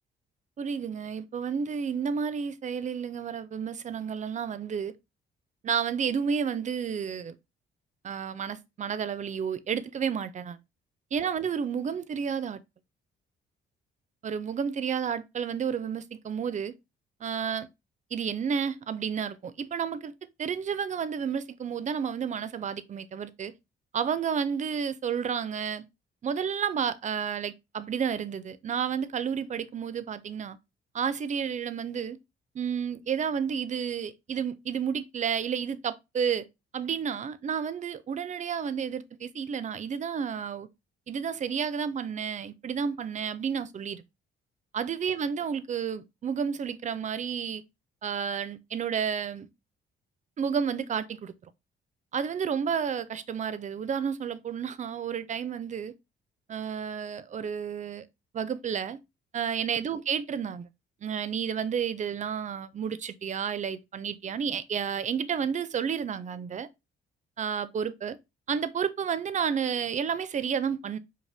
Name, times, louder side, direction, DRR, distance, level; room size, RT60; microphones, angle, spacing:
voice 1, 0.6-4.9 5.6-7.3 8.0-10.6 11.1-12.6 14.2-16.7 17.2-17.7 18.1-20.1 20.4-23.5 23.9-25.8 26.2-30.6 30.9-32.2 32.5-36.4 36.7-40.7 41.1-44.0 44.7-47.6 48.0-49.5 50.4-51.3 52.1-55.9 56.5-58.1 58.3-59.0 59.3-60.7 61.0-66.7 67.4-68.2 68.5-71.0, right 7 dB, 40° right, 0.5 m, -31 dB
5.2 x 2.2 x 3.4 m
cardioid pair, 90°, 20 cm